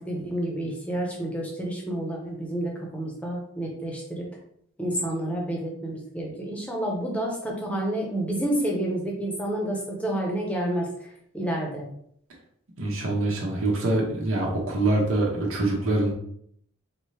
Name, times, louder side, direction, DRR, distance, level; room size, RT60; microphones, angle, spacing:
voice 1, 0.0-4.3 4.8-11.8, right 1 dB, 5° left, -1 dB, 0.8 m, -29 dB
voice 2, 12.8-16.1, right 2 dB, 75° right, -2 dB, 1.1 m, -24 dB
4.4 x 2.7 x 3.2 m, 0.68 s
head